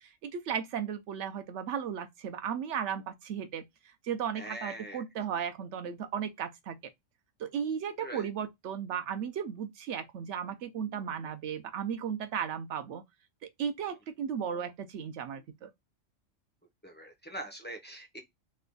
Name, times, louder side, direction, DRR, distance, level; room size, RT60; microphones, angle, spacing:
voice 1, 0.0-3.6 4.0-6.8 7.4-13.0 13.6-15.7, right 8 dB, 70° right, 0.9 m, -35 dB
voice 2, 4.3-5.0 8.0-8.3 16.8-18.2, right 1 dB, 15° left, 0.4 m, -42 dB
3.3 x 2.2 x 3.7 m
omnidirectional pair, 1.3 m